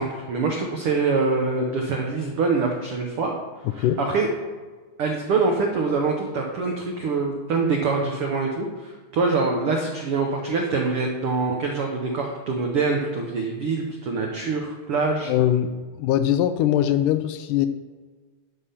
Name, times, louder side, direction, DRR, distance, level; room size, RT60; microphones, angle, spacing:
voice 1, 0.0-3.3 3.7-4.3 5.0-15.3, right 4 dB, 85° right, 1 dB, 1.2 m, -24 dB
voice 2, 15.3-15.7 16.0-17.7, left 11 dB, 80° left, 10 dB, 1.9 m, -21 dB
12.0 x 5.7 x 5.7 m, 1.4 s
omnidirectional pair, 3.9 m